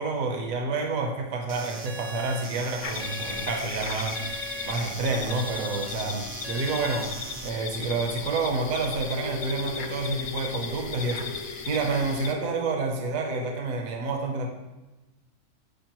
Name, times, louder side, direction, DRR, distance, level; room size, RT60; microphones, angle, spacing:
voice 1, 0.0-4.2 4.6-7.1 7.4-14.5, right 3 dB, 75° right, 3 dB, 1.2 m, -29 dB
sound 1, 1.5-7.5, right 2 dB, 50° right, 0.4 m, -39 dB
sound 2, 2.8-12.3, left 5 dB, 60° left, 0.5 m, -36 dB
sound 3, 8.6-13.6, left 5 dB, 85° left, 1.1 m, -40 dB
7.7 x 5.1 x 3.0 m, 1.1 s
omnidirectional pair, 1.5 m